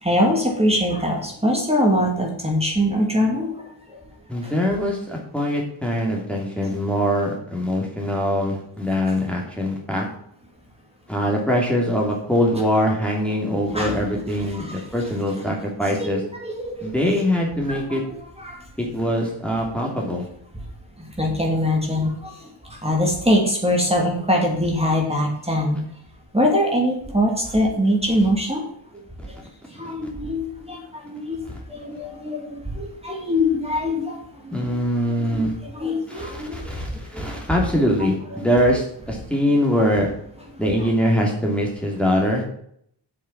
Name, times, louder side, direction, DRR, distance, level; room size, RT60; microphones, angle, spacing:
voice 1, 0.0-3.7 4.4-4.5 6.6-6.8 13.7-15.1 16.0-17.2 17.7-18.6 21.0-25.8 26.3-28.6 29.3-29.4 29.7-31.4 31.7-34.6 35.1-36.8 37.1-37.4 37.7-38.6 40.5-40.9, left 1 dB, 15° right, -1 dB, 2.8 m, -23 dB
voice 2, 4.3-10.0 11.1-16.2 16.8-18.0 18.8-20.2 34.5-35.5 36.1-40.1 40.6-42.4, equal, 5° left, -2 dB, 2.8 m, -23 dB
8.1 x 7.3 x 5.9 m, 0.67 s
wide cardioid pair, 100°, 45 cm